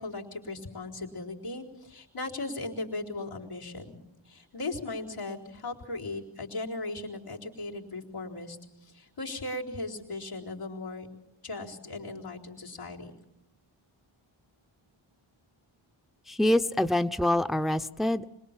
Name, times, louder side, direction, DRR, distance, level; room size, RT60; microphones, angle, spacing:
voice 1, 0.0-11.1 11.4-13.1, left 2 dB, 85° left, -3 dB, 4.3 m, -38 dB
voice 2, 16.3-18.4, left 1 dB, ahead, 8 dB, 0.9 m, -26 dB
26.0 x 20.5 x 7.4 m, 0.83 s
cardioid pair, 45°, 50 cm